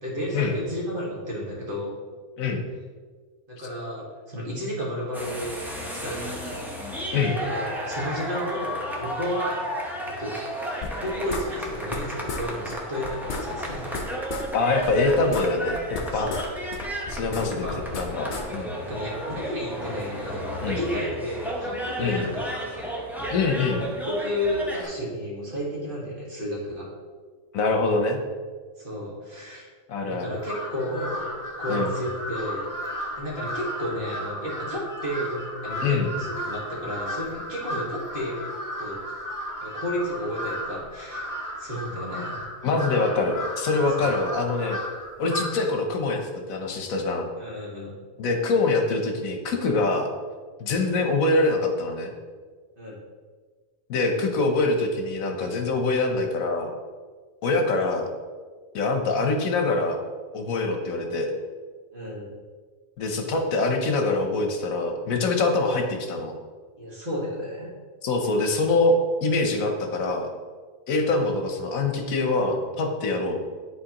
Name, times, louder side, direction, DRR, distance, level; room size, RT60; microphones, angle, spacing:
voice 1, 0.0-1.9 3.5-5.6 6.0-6.6 7.4-9.7 10.2-10.4 11.0-13.9 16.1-16.4 17.4-17.8 18.8-22.9 23.8-26.9 28.8-29.7 30.1-32.7 33.1-38.5 38.8-39.0 39.6-41.3 41.6-42.5 44.0-44.1 47.4-47.9 52.8-53.0 61.9-62.3 66.8-67.7, equal, 40° right, -4 dB, 1.7 m, -32 dB
sound 1, 5.1-24.8, equal, ahead, 0.6 m, -33 dB
sound 2, 10.8-12.0 12.3-12.4 12.7-12.8 13.0-14.5 14.8-16.5 16.7-18.4, left 4 dB, 45° left, 0.7 m, -34 dB
voice 2, 14.5-16.3 17.1-17.6 18.0-18.7 20.6-20.8 22.0-22.2 23.3-23.8 27.5-28.2 29.9-30.3 31.7-31.9 35.8-36.1 42.6-44.8 45.2-47.3 48.2-50.1 50.6-52.1 53.9-56.7 57.4-58.1 58.7-60.0 60.3-61.3 63.0-66.3 68.0-70.3 70.9-73.4, left 3 dB, 75° left, 4 dB, 1.2 m, -24 dB
Crow, 30.4-45.8, equal, 15° left, 1.0 m, -34 dB
10.5 x 4.1 x 2.9 m, 1.5 s
omnidirectional pair, 1.5 m